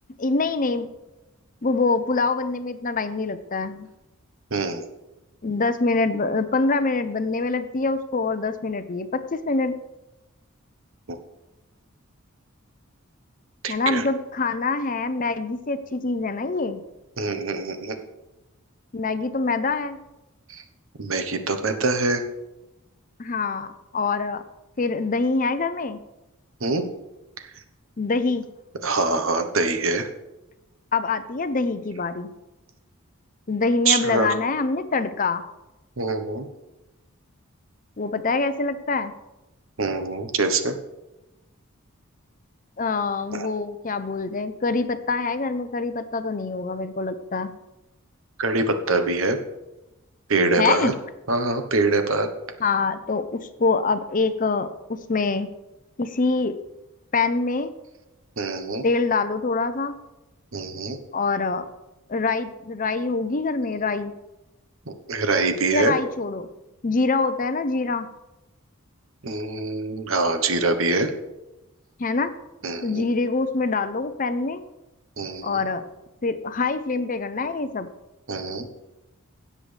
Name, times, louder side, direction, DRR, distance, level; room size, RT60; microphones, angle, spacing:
voice 1, 0.2-0.9 1.6-3.9 5.4-9.8 13.7-16.8 18.9-20.0 23.2-24.4 24.8-26.0 28.0-28.4 30.9-32.3 33.5-35.4 38.0-39.1 42.8-47.5 50.6-50.9 52.6-55.5 56.0-56.6 57.1-57.7 58.8-60.0 61.1-61.7 62.1-64.1 65.7-66.5 66.8-68.1 72.0-72.3 72.8-74.6 75.4-75.8 76.2-77.9, left 3 dB, 35° left, 11 dB, 0.6 m, -25 dB
voice 2, 4.5-4.8 11.1-11.2 13.6-14.0 17.2-18.0 20.5-20.6 21.0-22.2 26.6-26.8 28.8-30.1 33.9-34.3 36.0-36.5 39.8-40.8 43.3-43.5 48.4-49.4 50.3-50.9 51.3-52.3 58.4-58.8 60.5-61.0 65.1-65.9 69.2-71.1 72.6-73.0 75.2-75.6 78.3-78.7, right 3 dB, 65° right, 8 dB, 1.1 m, -24 dB
17.0 x 7.6 x 3.4 m, 1.0 s
head